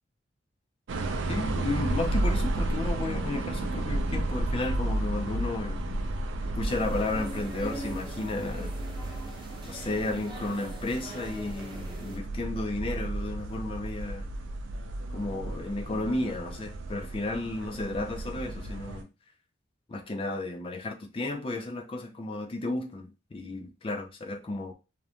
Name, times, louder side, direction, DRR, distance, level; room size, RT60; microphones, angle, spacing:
sound 1, 0.9-19.0, right 1 dB, 85° right, 0.4 m, -33 dB
voice 1, 1.3-5.8 6.5-8.7 9.6-14.3 15.1-19.1 19.9-24.7, left 2 dB, 30° left, 0.4 m, -33 dB
sound 2, 6.7-12.2, right 1 dB, 25° right, 0.7 m, -42 dB
2.5 x 2.1 x 2.7 m
head